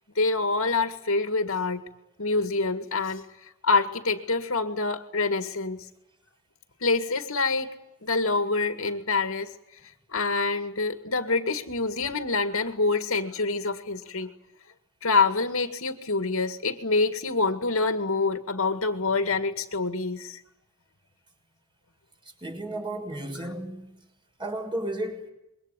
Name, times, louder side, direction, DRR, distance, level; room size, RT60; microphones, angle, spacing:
voice 1, 0.2-1.8 2.2-3.2 3.6-5.9 6.8-9.6 10.1-14.3 15.0-20.4 23.4-23.5, left 3 dB, 65° left, 2.1 m, -26 dB
voice 2, 22.4-24.0 24.4-25.3, right 1 dB, 25° right, 6.4 m, -33 dB
27.0 x 23.0 x 9.4 m
head